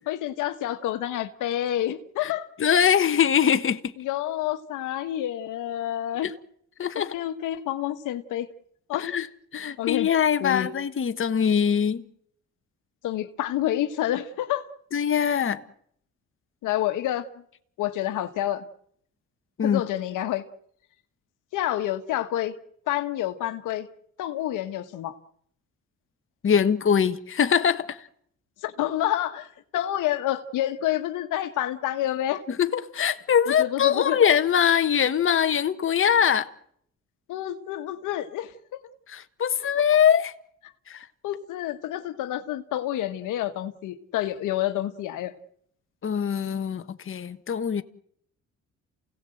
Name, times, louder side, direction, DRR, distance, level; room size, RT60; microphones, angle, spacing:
voice 1, 0.1-2.5 4.0-6.3 7.0-8.5 8.9-9.1 9.8-10.1 10.4-10.7 13.0-14.7 16.6-17.3 17.8-18.7 19.6-20.5 21.5-22.6 22.9-23.9 24.2-25.1 28.6-32.4 33.5-34.2 37.3-38.8 41.2-45.3, left 13 dB, 90° left, 1.4 m, -28 dB
voice 2, 2.6-3.9 6.2-6.3 6.8-7.2 9.0-9.3 9.5-12.0 14.9-15.6 19.6-19.8 26.4-28.1 32.5-36.5 39.1-40.3 40.9-41.1 46.0-47.8, left 8 dB, 45° left, 1.3 m, -22 dB
28.5 x 17.5 x 7.8 m
cardioid pair, 90°, 30 cm